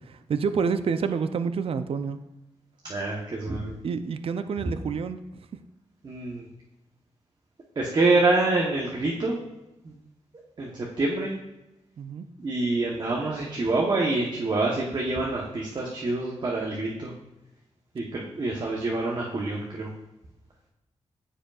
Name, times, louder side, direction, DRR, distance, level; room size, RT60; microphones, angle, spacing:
voice 1, 0.0-2.2 3.8-5.2 12.0-12.3, right 5 dB, 60° right, 10 dB, 0.4 m, -28 dB
voice 2, 2.8-3.8 6.0-6.5 7.8-9.4 9.8-9.9 10.6-11.3 12.4-17.1 17.9-19.9, right 2 dB, 40° right, -2 dB, 0.9 m, -26 dB
13.5 x 5.0 x 2.4 m, 0.92 s
wide cardioid pair, 155°, 11 cm